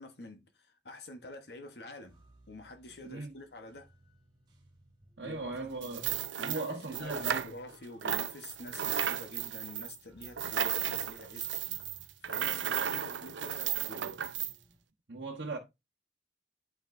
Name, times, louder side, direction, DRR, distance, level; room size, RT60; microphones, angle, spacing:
voice 1, 0.0-2.2 2.5-3.9 5.2-5.7 6.4-11.5 12.2-14.1, left 2 dB, 60° left, 1.0 m, -47 dB
sound 1, 2.1-14.8, right 1 dB, 25° right, 1.5 m, -62 dB
voice 2, 3.0-3.3 5.2-7.5 15.1-15.6, right 3 dB, 65° right, 1.1 m, -38 dB
sound 2, 5.8-7.8 8.0-14.5, right 10 dB, 85° right, 0.6 m, -34 dB
9.7 x 5.8 x 2.6 m
head